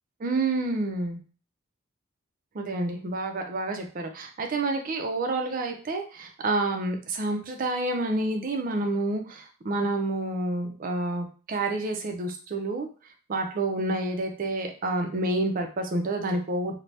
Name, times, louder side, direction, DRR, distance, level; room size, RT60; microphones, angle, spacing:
voice 1, 0.2-1.2 2.5-12.9 13.3-16.8, right 2 dB, 40° right, 4 dB, 0.5 m, -29 dB
2.6 x 2.1 x 3.2 m, 0.38 s
head